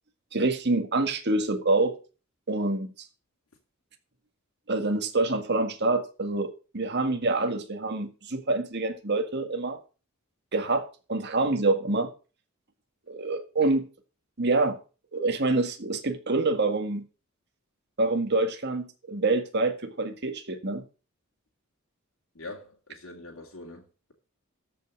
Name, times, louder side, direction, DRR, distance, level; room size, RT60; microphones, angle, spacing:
voice 1, 0.3-2.0 2.5-3.1 4.7-9.8 10.5-10.8 11.1-12.1 13.1-13.9 14.4-14.8 15.1-17.0 18.0-20.8, right 2 dB, 55° right, 1.8 m, -26 dB
voice 2, 22.3-24.1, left 2 dB, 75° left, 2.4 m, -44 dB
13.5 x 5.6 x 6.0 m
head